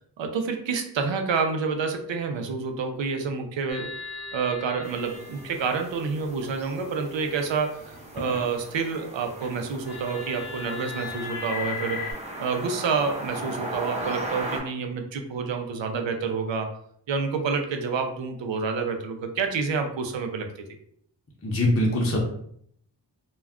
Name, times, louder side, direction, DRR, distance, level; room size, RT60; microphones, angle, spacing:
voice 1, 0.2-3.9 4.3-12.0 12.4-16.7 17.1-20.5, right 5 dB, 80° right, 5 dB, 0.5 m, -28 dB
sound 1, 3.7-8.5 8.9-12.1, left 4 dB, 60° left, 0.9 m, -39 dB
sound 2, 4.8-14.6, right 1 dB, 15° right, 0.7 m, -38 dB
voice 2, 21.4-22.2, left 1 dB, 30° left, -2 dB, 0.6 m, -22 dB
2.3 x 2.1 x 3.5 m, 0.67 s
wide cardioid pair, 50°, 44 cm